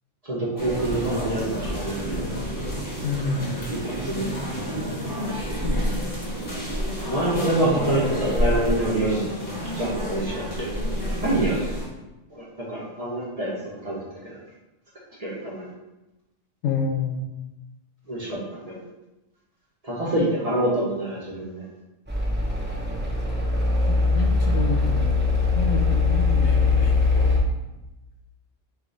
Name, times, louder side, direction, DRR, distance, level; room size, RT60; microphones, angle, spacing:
voice 1, 0.2-2.2 3.7-3.8 4.1-4.3 7.1-9.3 9.7-11.6 12.3-13.5 13.8-14.4 15.2-15.7 18.1-18.8 19.8-21.6, right 1 dB, 35° right, -6 dB, 1.0 m, -26 dB
sound 1, 0.6-11.9, equal, 15° left, 1.0 m, -29 dB
voice 2, 3.0-3.9 5.6-6.2 16.6-17.4 23.9-25.2 25.5-27.4, left 3 dB, 70° left, 2 dB, 0.9 m, -29 dB
sound 2, 22.1-27.4, left 3 dB, 10° right, 0.6 m, -21 dB
4.7 x 2.5 x 3.9 m, 1.0 s
omnidirectional pair, 1.3 m